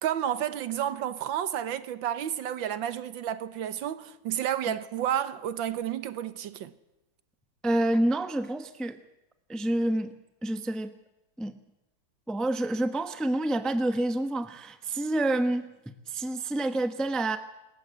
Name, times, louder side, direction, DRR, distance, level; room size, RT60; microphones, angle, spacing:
voice 1, 0.0-6.7, right 10 dB, 80° right, 1.7 m, -31 dB
voice 2, 7.6-9.0 9.5-10.2 10.4-10.9 11.4-11.6 12.3-15.7 16.1-17.4, right 1 dB, ahead, 0.6 m, -28 dB
25.5 x 14.0 x 8.0 m
omnidirectional pair, 2.1 m